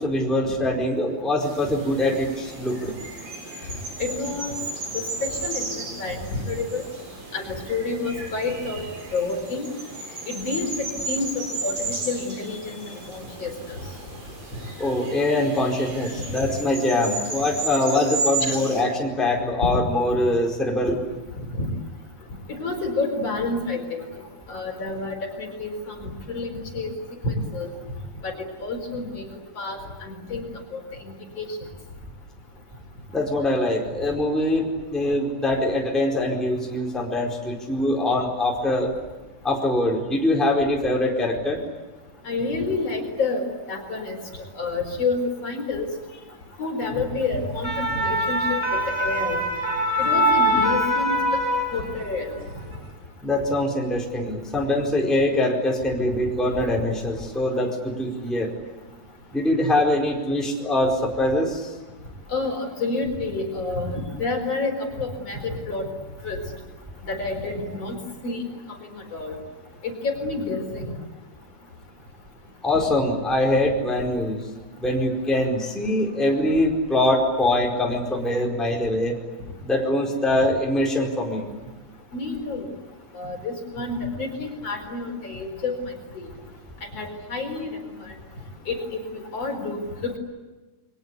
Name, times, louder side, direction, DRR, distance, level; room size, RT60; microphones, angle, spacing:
voice 1, 0.0-2.9 14.8-21.0 33.1-38.9 39.4-41.6 53.2-58.5 59.3-61.7 72.6-74.4 74.8-79.1 79.6-81.5, left 1 dB, ahead, 0 dB, 4.2 m, -23 dB
sound 1, 1.4-18.8, right 3 dB, 65° right, 8.8 m, -34 dB
voice 2, 4.0-4.6 5.2-5.7 6.0-6.8 7.3-8.8 9.1-9.7 10.3-13.8 16.4-16.5 18.4-18.6 19.7-19.8 21.4-21.7 22.5-24.0 24.5-26.9 27.2-27.7 28.2-29.3 29.6-31.5 42.3-45.9 46.6-49.4 50.0-51.4 51.7-52.3 62.3-65.9 66.2-66.4 67.0-68.0 68.2-68.8 69.1-69.3 69.8-70.9 82.1-82.7 83.1-86.3 86.9-88.2 88.7-88.8 89.3-90.2, left 3 dB, 40° left, 3 dB, 5.3 m, -29 dB
sound 2, 47.4-52.2 52.5-52.7, equal, 35° right, 5.2 m, -23 dB
29.5 x 23.0 x 8.4 m, 1.2 s
omnidirectional pair, 4.2 m